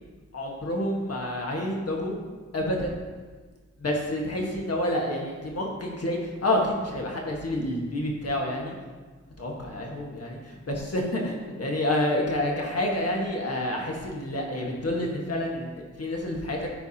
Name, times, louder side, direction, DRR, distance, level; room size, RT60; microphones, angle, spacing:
voice 1, 0.3-2.2 2.5-3.0 3.8-8.7 9.4-16.7, left 1 dB, 55° left, -1 dB, 1.5 m, -28 dB
12.5 x 4.7 x 2.9 m, 1.4 s
wide cardioid pair, 95°, 29 cm